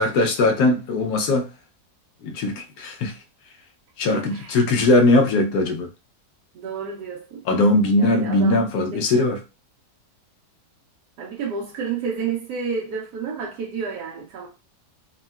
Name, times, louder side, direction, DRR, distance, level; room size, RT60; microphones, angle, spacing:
voice 1, 0.0-1.5 2.2-3.2 4.0-5.9 7.5-9.4, left 2 dB, 80° left, 1.2 m, -20 dB
voice 2, 4.1-4.6 6.5-7.4 8.0-8.6 8.9-9.3 11.2-14.5, right 6 dB, 85° right, 1.2 m, -30 dB
3.7 x 2.1 x 2.2 m
omnidirectional pair, 1.7 m